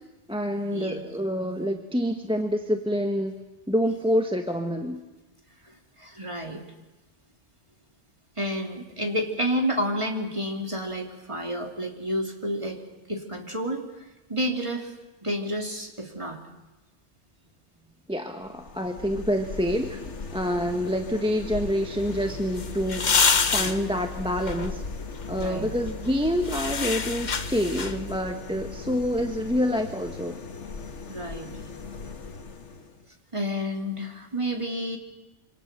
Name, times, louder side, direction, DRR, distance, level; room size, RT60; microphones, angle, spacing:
voice 1, 0.3-3.3 3.7-5.0 18.1-23.2 23.5-24.8 25.3-30.4, equal, 5° right, 4 dB, 1.4 m, -27 dB
voice 2, 5.6-6.6 8.4-12.8 13.1-14.9 15.2-16.4 25.4-25.7 31.1-31.5 33.3-35.0, equal, 25° right, 2 dB, 3.0 m, -30 dB
sound 1, 18.4-33.1, left 4 dB, 75° left, 1.8 m, -39 dB
sound 2, 22.0-28.2, left 5 dB, 40° left, 1.1 m, -28 dB
26.5 x 25.5 x 6.8 m, 1.1 s
omnidirectional pair, 1.2 m